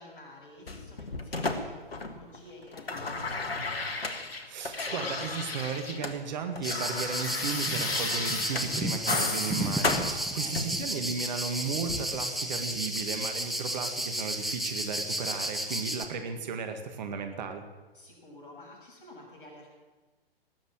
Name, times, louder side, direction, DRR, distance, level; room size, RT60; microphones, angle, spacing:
voice 1, 0.0-3.8 10.3-10.7 17.9-19.7, left 1 dB, 55° left, -2 dB, 6.8 m, -50 dB
sound 1, 0.7-2.4 2.6-6.2 6.4-10.9 11.9-12.0, left 3 dB, 75° left, 1.7 m, -33 dB
voice 2, 4.5-17.6, right 5 dB, 45° right, 6 dB, 1.9 m, -35 dB
sound 2, 6.6-16.1, right 1 dB, ahead, 0.8 m, -33 dB
19.0 x 7.3 x 8.9 m, 1.2 s
figure-of-eight pair, 120°, 30 cm